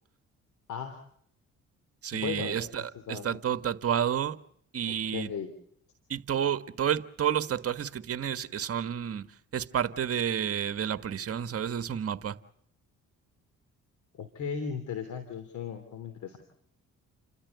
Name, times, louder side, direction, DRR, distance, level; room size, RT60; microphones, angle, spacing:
voice 1, 0.7-1.0 2.1-3.4 4.8-5.5 14.1-16.4, left 6 dB, 70° left, 3.1 m, -37 dB
voice 2, 2.0-2.8 3.1-4.4 4.7-5.3 6.1-9.3 9.5-12.3, right 9 dB, 50° right, 1.5 m, -30 dB
29.5 x 13.5 x 8.2 m
cardioid pair, 90°, 30 cm